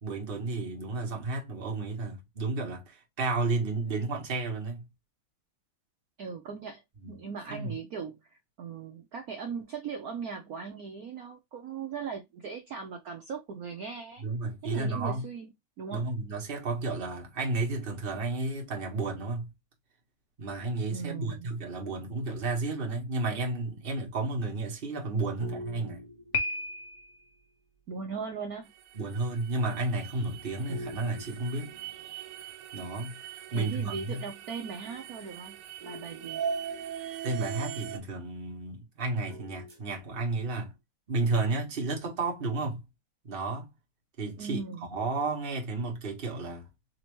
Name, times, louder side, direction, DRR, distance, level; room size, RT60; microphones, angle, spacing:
voice 1, 0.0-4.9 7.0-7.2 7.5-7.8 14.2-15.2 15.9-19.5 20.4-26.0 28.9-31.8 32.7-33.2 33.5-34.2 37.2-40.7 41.1-42.8 43.2-43.7 44.2-44.6 44.9-46.7, right 3 dB, 30° right, 1.2 m, -32 dB
voice 2, 6.2-6.8 7.1-14.2 14.6-15.5 15.8-16.1 20.9-21.5 27.9-28.7 33.5-36.4 44.4-44.8, right 6 dB, 70° right, 0.8 m, -39 dB
sound 1, 25.4-27.1 30.7-32.5 35.8-37.3 39.3-40.5, right 1 dB, 50° right, 1.8 m, -47 dB
Piano, 26.3-27.3, left 3 dB, 70° left, 0.6 m, -32 dB
sound 2, 28.7-38.0, right 8 dB, 90° right, 1.5 m, -40 dB
4.2 x 2.8 x 2.9 m
omnidirectional pair, 2.3 m